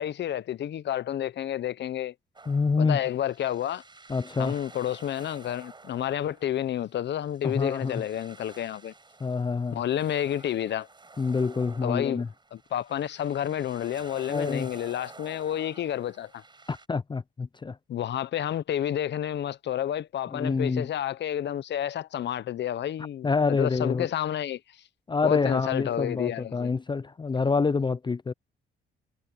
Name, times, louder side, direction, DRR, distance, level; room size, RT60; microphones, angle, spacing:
voice 1, 0.0-2.1 2.8-3.8 4.4-8.9 9.7-10.9 11.8-12.2 12.5-16.4 17.9-24.8 25.2-26.7, left 11 dB, 60° left, 0.9 m, -30 dB
sound 1, 2.4-16.9, right 3 dB, 25° right, 7.6 m, -51 dB
voice 2, 2.5-3.0 4.1-4.6 7.4-8.0 9.2-9.8 11.2-12.3 14.3-14.7 16.7-17.8 20.3-20.9 23.2-24.1 25.1-28.3, left 4 dB, 25° left, 0.6 m, -27 dB
cardioid pair, 90°, 20 cm